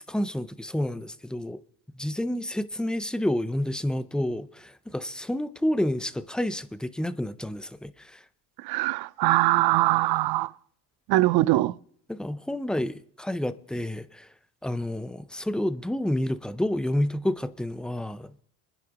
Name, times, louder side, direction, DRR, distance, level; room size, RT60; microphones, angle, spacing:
voice 1, 0.1-1.6 1.9-8.2 12.1-14.3 14.6-18.4, left 1 dB, ahead, 0.5 m, -29 dB
voice 2, 8.6-10.5 11.1-11.8, right 17 dB, 60° right, 0.7 m, -22 dB
25.0 x 10.5 x 3.0 m
cardioid pair, 115°, 44 cm